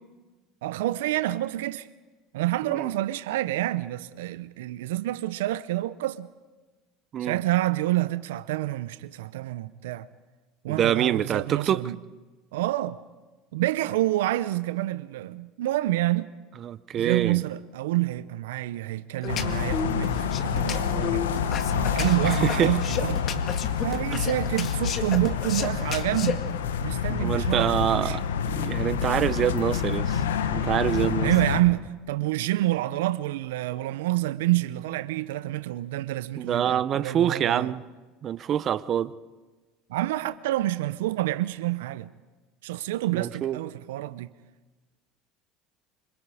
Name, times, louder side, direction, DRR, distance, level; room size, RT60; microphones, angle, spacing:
voice 1, 0.6-1.9 2.3-6.3 7.2-10.1 10.6-12.0 12.5-13.0 13.5-16.3 17.0-21.3 21.7-23.2 23.8-26.4 26.8-28.2 31.2-37.7 39.9-42.1 42.6-44.3, right 16 dB, 80° right, 0.6 m, -28 dB
voice 2, 10.7-11.8 16.6-17.4 22.2-22.7 27.1-28.2 28.5-30.2 30.5-31.3 36.4-37.8 38.2-39.1 43.1-43.6, right 10 dB, 45° right, 0.8 m, -26 dB
sound 1, 19.2-26.3, left 7 dB, 45° left, 2.1 m, -32 dB
sound 2, 19.3-31.6, left 7 dB, 85° left, 1.2 m, -28 dB
26.0 x 26.0 x 5.0 m
hypercardioid pair, 80°, 0 cm